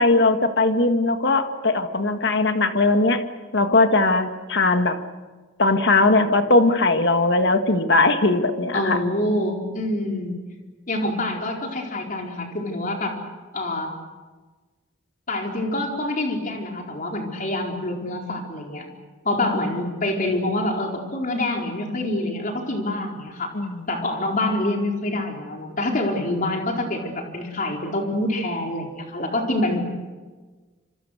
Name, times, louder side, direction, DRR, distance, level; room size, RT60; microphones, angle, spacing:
voice 1, 0.0-3.2 3.5-5.0 5.6-9.0 23.5-23.8, left 2 dB, 60° left, 7 dB, 1.8 m, -19 dB
voice 2, 8.7-10.4 10.9-13.2 13.5-13.9 15.3-18.9 19.2-23.5 23.9-29.9, left 1 dB, 45° left, 1 dB, 4.4 m, -26 dB
27.0 x 26.5 x 6.6 m, 1.3 s
head